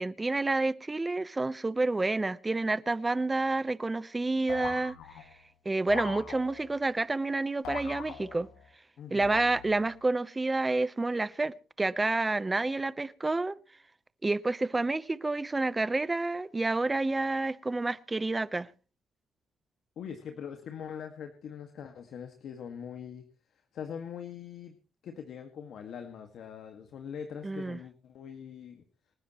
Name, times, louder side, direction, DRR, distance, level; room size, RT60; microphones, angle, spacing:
voice 1, 0.0-5.0 5.6-8.5 9.1-13.6 14.2-18.7 27.4-27.8, right 2 dB, 20° right, 0.9 m, -29 dB
sound 1, 4.5-5.4 5.9-6.8 7.7-8.7 9.2-9.9, left 9 dB, 85° left, 1.4 m, -42 dB
voice 2, 9.0-9.4 20.0-23.2 23.7-24.8 25.0-28.8, left 7 dB, 70° left, 1.9 m, -42 dB
27.5 x 9.9 x 3.1 m
cardioid pair, 90°, 0 cm